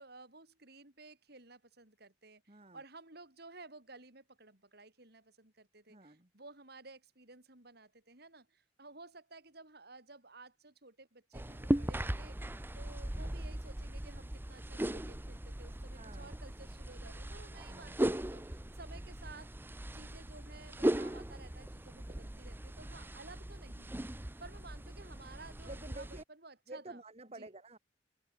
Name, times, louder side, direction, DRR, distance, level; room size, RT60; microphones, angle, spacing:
voice 1, 0.0-27.0 27.3-27.5, right 3 dB, 60° right, 6.5 m, -55 dB
voice 2, 2.5-2.8 5.9-6.3 15.9-16.5 17.7-18.0 25.6-26.2 26.7-27.8, right 2 dB, 35° right, 3.7 m, -50 dB
sound 1, 11.3-26.2, right 1 dB, 10° right, 0.7 m, -38 dB
open air
head